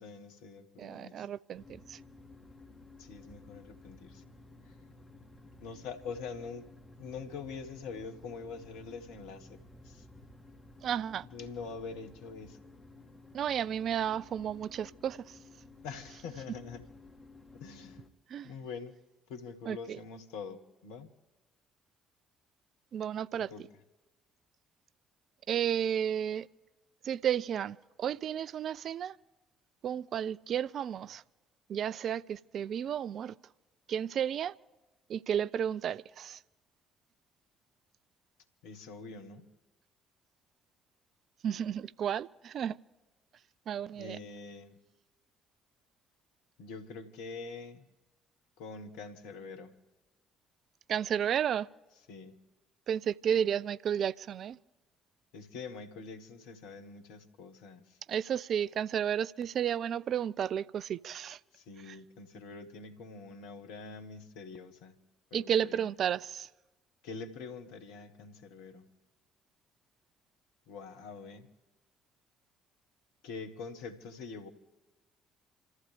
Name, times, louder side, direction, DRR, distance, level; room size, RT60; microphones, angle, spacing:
voice 1, 0.0-1.3 3.0-4.2 4.6-4.7 5.6-6.7 7.0-9.6 9.8-10.1 11.3-12.6 15.8-16.8 17.5-18.0 18.4-18.9 19.3-21.1 23.3-23.6 38.6-39.5 43.9-44.8 46.6-47.9 48.6-49.8 52.1-52.4 55.3-58.0 61.5-65.0 65.3-65.9 67.0-68.8 70.7-71.5 73.2-74.5, left 5 dB, 70° left, 1.4 m, -44 dB
voice 2, 0.8-2.0 10.8-11.3 13.3-15.4 18.3-18.5 19.7-20.0 22.9-23.5 25.5-26.5 27.0-29.2 29.8-31.2 31.7-33.4 33.9-34.6 35.1-36.4 41.4-42.8 43.7-44.2 50.9-51.7 52.9-54.6 58.1-61.4 61.9-62.0 65.3-66.5, right 9 dB, 55° right, 0.4 m, -32 dB
sound 1, 1.5-18.1, left 2 dB, 20° left, 2.7 m, -55 dB
27.5 x 14.5 x 3.4 m
figure-of-eight pair, 50°, 0 cm